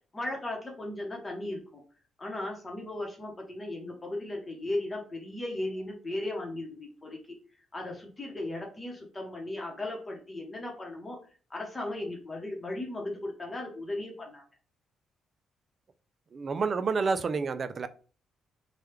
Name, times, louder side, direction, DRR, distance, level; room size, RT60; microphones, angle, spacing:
voice 1, 0.1-1.8 2.2-7.4 7.7-11.2 11.5-14.4, left 1 dB, 25° left, 0.8 m, -36 dB
voice 2, 16.3-17.9, right 4 dB, 45° right, 0.3 m, -29 dB
3.2 x 2.2 x 3.1 m
cardioid pair, 90°, 0 cm